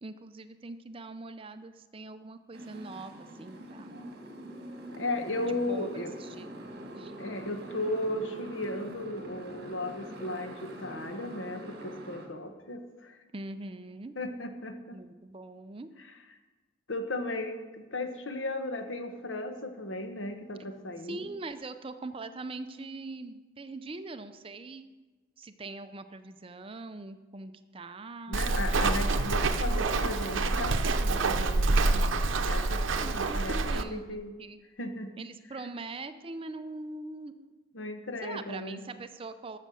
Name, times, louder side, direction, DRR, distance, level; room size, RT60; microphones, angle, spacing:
voice 1, 0.0-4.0 5.5-6.5 7.0-7.1 13.3-14.1 14.9-15.9 21.0-24.9 25.4-28.4 32.5-34.6 35.2-37.5 38.2-39.6, right 2 dB, 30° right, 10 dB, 0.5 m, -42 dB
Motorcycle, 2.5-12.3, right 1 dB, 55° right, 1.5 m, -44 dB
voice 2, 4.9-6.1 7.2-13.2 14.2-15.0 16.9-21.3 28.3-34.3 34.8-35.2 37.7-38.8, left 1 dB, 80° left, 7 dB, 1.2 m, -36 dB
Walk footsteps, 28.3-33.8, right 3 dB, 85° right, 0.7 m, -27 dB
13.5 x 6.7 x 6.3 m, 1.3 s
head